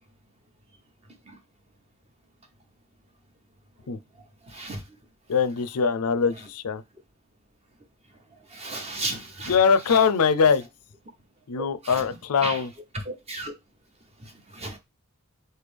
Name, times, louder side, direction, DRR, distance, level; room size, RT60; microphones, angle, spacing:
voice 1, 5.3-6.8 9.5-10.6 11.5-12.7, left 6 dB, 85° left, 0.5 m, -22 dB
voice 2, 8.5-9.6 11.8-12.0 12.4-12.6 13.1-13.5 14.5-14.8, right 2 dB, 30° right, 0.9 m, -33 dB
4.4 x 3.3 x 3.4 m
head